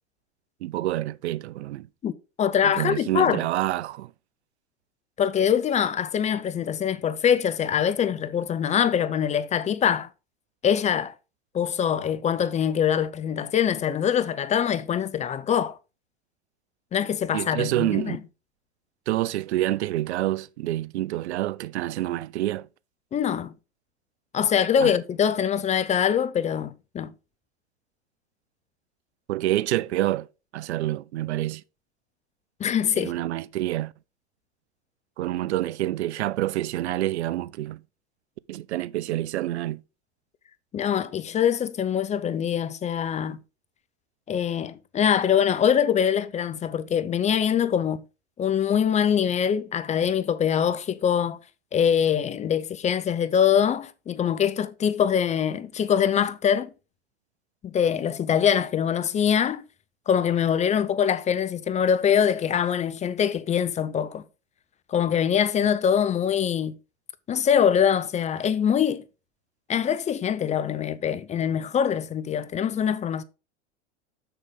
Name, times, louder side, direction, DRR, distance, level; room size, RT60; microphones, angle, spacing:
voice 1, 0.6-1.9 2.6-4.1 17.3-18.2 19.1-22.7 24.8-24.9 29.3-30.3 30.5-31.6 32.9-33.9 35.2-37.8 38.5-39.8, right 15 dB, 70° right, 0.5 m, -27 dB
voice 2, 2.4-3.4 5.2-10.1 10.6-11.1 11.5-15.8 16.9-18.2 23.1-23.5 24.3-27.1 32.6-33.1 40.7-43.4 44.3-48.0 48.4-51.4 51.7-56.7 57.6-59.6 60.1-64.2 64.9-66.8 67.3-69.0 69.7-73.2, left 8 dB, 20° left, 0.5 m, -23 dB
6.7 x 6.6 x 3.7 m
hypercardioid pair, 95°, 34 cm